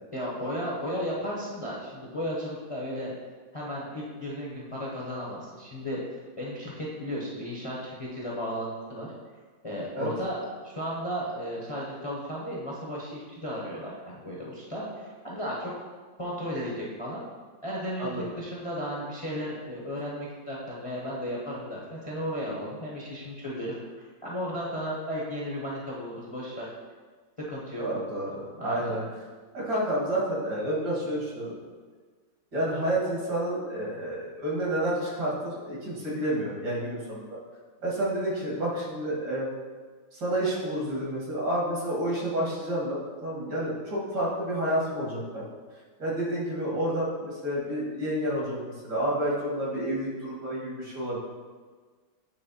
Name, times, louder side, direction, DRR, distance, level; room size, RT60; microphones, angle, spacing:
voice 1, 0.1-3.1 3.5-6.0 6.4-9.1 9.6-15.7 16.2-17.2 17.6-26.7 27.5-27.8 28.6-29.0, equal, 25° left, -5 dB, 0.7 m, -34 dB
voice 2, 18.0-18.3 27.7-29.0 29.5-31.6 32.5-37.3 37.8-39.5 40.1-45.4 46.0-51.2, right 1 dB, 70° right, -5 dB, 2.4 m, -29 dB
8.8 x 3.1 x 4.2 m, 1.5 s
omnidirectional pair, 1.9 m